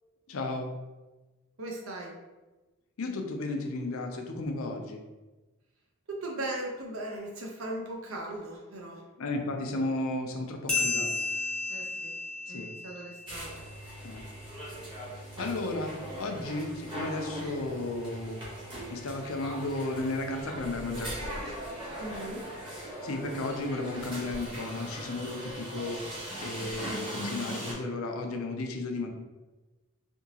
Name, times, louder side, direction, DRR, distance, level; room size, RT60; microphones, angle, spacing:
voice 1, 0.3-0.7 3.0-5.0 9.2-11.1 12.5-12.7 14.0-14.2 15.1-18.4 18.9-21.6 22.8-29.1, left 2 dB, 75° left, 4 dB, 0.5 m, -34 dB
voice 2, 1.6-2.1 6.1-9.0 11.7-12.1 12.5-13.6 22.0-22.4, right 1 dB, 75° right, -1 dB, 0.7 m, -38 dB
sound 1, 10.7-13.7, left 3 dB, 5° left, 0.4 m, -33 dB
sound 2, 13.3-27.7, right 1 dB, 20° right, 1.0 m, -40 dB
3.5 x 2.8 x 2.8 m, 1.2 s
head